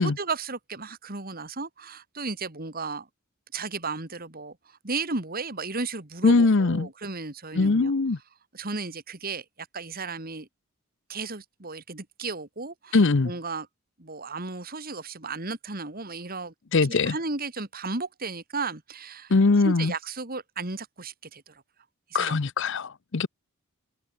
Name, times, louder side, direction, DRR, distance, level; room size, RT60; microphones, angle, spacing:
voice 1, 0.0-3.1 3.5-7.9 8.5-10.5 11.1-13.7 14.0-16.5 16.9-19.3 19.6-21.6 22.1-22.4, right 3 dB, 40° right, 2.6 m, -34 dB
voice 2, 6.2-6.9 7.6-8.2 12.9-13.3 16.7-17.1 19.3-19.9 22.1-23.3, left 3 dB, 55° left, 0.7 m, -21 dB
open air
head